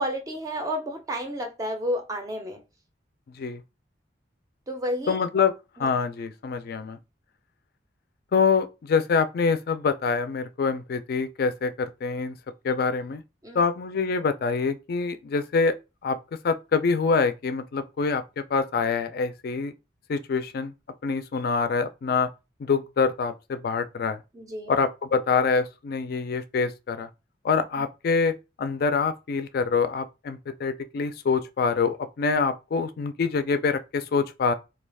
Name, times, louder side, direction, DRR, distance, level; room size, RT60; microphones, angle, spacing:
voice 1, 0.0-2.6 4.7-5.2 5.8-5.9 13.4-13.6 24.3-24.7, equal, 20° right, 0.4 m, -31 dB
voice 2, 5.1-5.5 5.8-7.0 8.3-12.4 12.6-13.2 13.5-15.7 16.0-16.2 16.4-18.2 18.5-19.7 20.1-20.7 21.0-22.3 22.6-24.2 24.7-27.1 27.4-34.5, left 5 dB, 55° left, 0.4 m, -25 dB
2.3 x 2.3 x 3.3 m
head